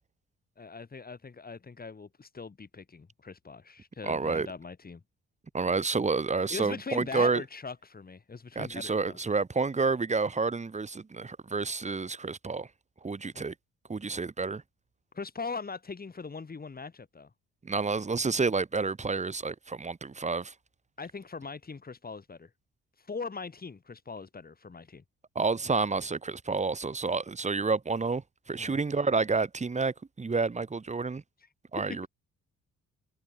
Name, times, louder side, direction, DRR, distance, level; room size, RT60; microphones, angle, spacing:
voice 1, 0.6-5.0 6.5-9.2 15.1-17.3 21.0-22.5 23.0-25.0 28.6-28.8 31.9-32.0, left 4 dB, 30° left, 4.3 m, -40 dB
voice 2, 4.0-4.5 5.5-7.4 8.5-12.7 13.0-13.5 13.9-14.6 17.6-20.5 25.3-31.2 31.7-32.1, right 4 dB, 25° right, 1.5 m, -29 dB
cardioid pair, 90°, 30 cm